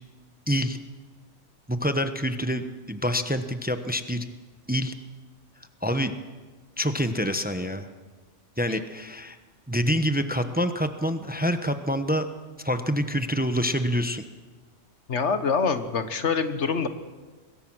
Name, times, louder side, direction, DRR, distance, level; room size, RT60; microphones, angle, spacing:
voice 1, 0.5-0.8 1.7-4.3 4.7-4.9 5.8-6.1 6.8-7.9 8.6-9.4 9.7-12.3 12.6-14.2, equal, 10° right, 9 dB, 0.9 m, -26 dB
voice 2, 15.1-16.9, left 5 dB, 75° left, 9 dB, 1.6 m, -25 dB
24.0 x 21.5 x 6.2 m, 1.4 s
omnidirectional pair, 1.2 m